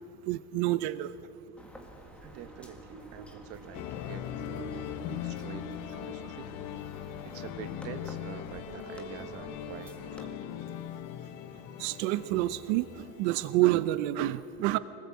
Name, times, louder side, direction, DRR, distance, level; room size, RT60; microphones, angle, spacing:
voice 1, 0.3-1.1 11.8-14.8, right 16 dB, 85° right, 14 dB, 0.9 m, -28 dB
sound 1, 1.6-10.3, left 1 dB, 5° left, 1.9 m, -51 dB
sound 2, 2.2-11.6, right 2 dB, 30° right, 3.2 m, -49 dB
voice 2, 2.2-6.6 7.2-10.5, right 9 dB, 45° right, 10 dB, 1.3 m, -47 dB
sound 3, 3.7-13.7, left 12 dB, 60° left, 1.3 m, -40 dB
25.0 x 19.0 x 8.6 m, 2.6 s
cardioid pair, 175°, 33 cm